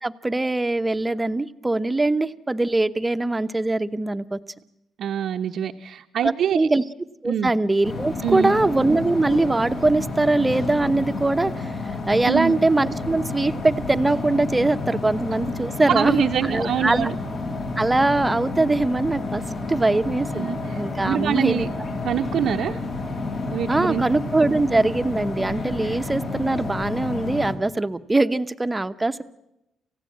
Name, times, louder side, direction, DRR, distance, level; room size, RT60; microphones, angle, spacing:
voice 1, 0.0-4.4 6.2-6.8 7.2-11.7 12.1-17.1 17.8-19.4 19.7-21.7 23.7-29.2, right 2 dB, 15° right, 10 dB, 1.0 m, -22 dB
voice 2, 5.0-6.7 7.2-7.5 8.2-8.5 12.3-12.6 15.9-17.2 20.3-21.7 22.0-22.8 23.5-24.0, right 9 dB, 70° right, 1 dB, 0.9 m, -25 dB
sound 1, 7.8-27.5, left 3 dB, 60° left, 6.5 m, -30 dB
28.0 x 16.0 x 8.6 m, 0.90 s
cardioid pair, 90°, 0 cm